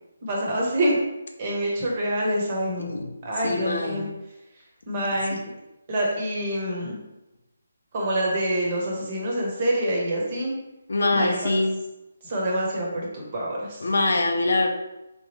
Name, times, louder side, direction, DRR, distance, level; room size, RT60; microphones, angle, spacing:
voice 1, 0.2-1.0 1.4-2.9 3.2-4.1 4.9-5.4 5.9-7.0 7.9-10.5 11.1-11.5 12.2-13.9, right 1 dB, 30° right, -3 dB, 0.9 m, -26 dB
voice 2, 2.8-3.1 3.4-4.1 5.3-5.5 10.9-11.7 13.8-14.7, left 2 dB, 75° left, 3 dB, 0.6 m, -24 dB
3.6 x 3.0 x 3.1 m, 0.97 s
hypercardioid pair, 170°, 0 cm